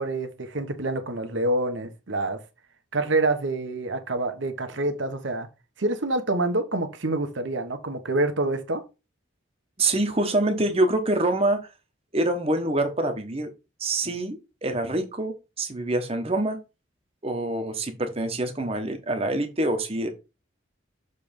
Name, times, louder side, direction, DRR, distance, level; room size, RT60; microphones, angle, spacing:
voice 1, 0.0-2.4 2.9-5.5 5.8-8.8, right 2 dB, 70° right, 1.1 m, -27 dB
voice 2, 9.8-11.6 12.1-13.5 13.8-16.6 17.2-20.1, right 2 dB, 30° right, 1.0 m, -25 dB
6.8 x 3.3 x 5.2 m
head